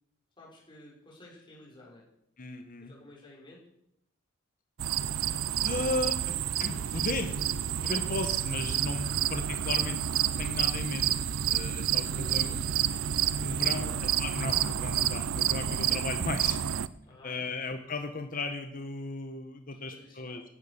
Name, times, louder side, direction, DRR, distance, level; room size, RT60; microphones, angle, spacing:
voice 1, 0.4-2.0 2.8-3.6 9.1-9.2 12.1-12.8 13.3-14.0 17.0-17.6 19.7-20.4, left 1 dB, 25° left, -4 dB, 6.2 m, -53 dB
voice 2, 2.4-2.9 5.6-7.5 7.8-11.1 11.5-12.6 13.3-13.9 14.2-16.6 17.2-20.4, left 3 dB, 40° left, 7 dB, 1.2 m, -36 dB
sound 1, 4.8-16.9, right 10 dB, 80° right, 0.6 m, -29 dB
16.5 x 12.5 x 6.9 m, 0.78 s
head